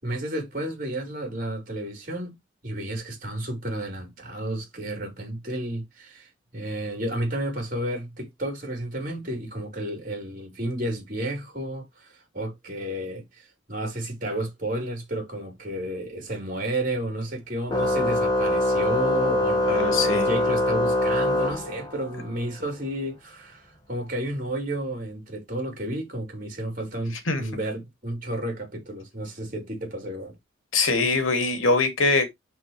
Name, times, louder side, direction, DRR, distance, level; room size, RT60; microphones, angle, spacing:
voice 1, 0.0-2.3 2.6-30.3, right 1 dB, 45° right, 5.0 m, -32 dB
Organ, 17.7-22.2, left 1 dB, 20° left, 1.8 m, -23 dB
voice 2, 19.7-20.3 27.3-27.4 30.7-32.3, left 3 dB, 90° left, 2.5 m, -22 dB
11.5 x 4.8 x 3.3 m
head